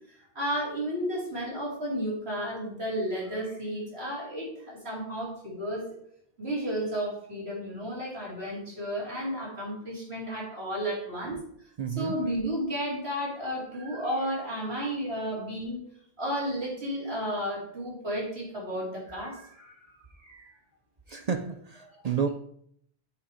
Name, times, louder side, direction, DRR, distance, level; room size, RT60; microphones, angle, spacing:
voice 1, 0.1-5.9 6.4-11.3 12.0-15.8 16.2-19.9 20.2-20.5 21.8-22.1, equal, 85° right, 3.2 m, -33 dB
voice 2, 11.8-12.3 21.1-22.3, right 6 dB, 50° right, 0.5 m, -31 dB
8.2 x 4.9 x 4.9 m
omnidirectional pair, 1.0 m